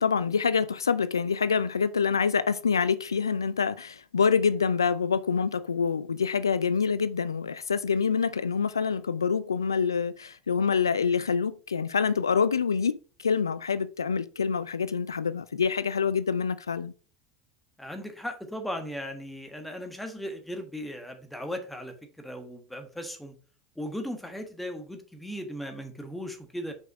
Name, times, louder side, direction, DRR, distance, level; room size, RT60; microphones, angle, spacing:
voice 1, 0.0-16.9, left 6 dB, 85° left, 0.3 m, -26 dB
voice 2, 17.8-23.3 23.7-26.7, equal, 5° left, 1.5 m, -37 dB
5.3 x 5.3 x 4.7 m
figure-of-eight pair, 80°, 2 cm